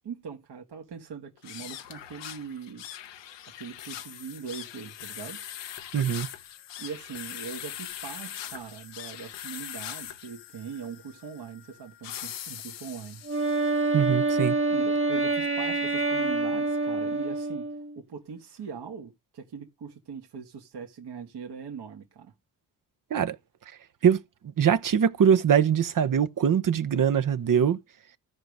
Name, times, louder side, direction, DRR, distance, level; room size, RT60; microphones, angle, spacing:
voice 1, 0.0-2.8 3.6-5.5 6.8-13.2 14.7-17.7 18.0-22.3, right 6 dB, 65° right, 1.8 m, -41 dB
sound 1, 1.4-13.9, left 11 dB, 75° left, 1.0 m, -41 dB
voice 2, 5.9-6.3 13.9-14.6 23.1-23.4 24.0-24.2 24.6-27.8, right 8 dB, 50° right, 0.9 m, -22 dB
Wind instrument woodwind instrument, 13.2-18.0, right 3 dB, 30° right, 1.7 m, -26 dB
14.0 x 5.2 x 4.8 m
supercardioid pair, 50°, 43 cm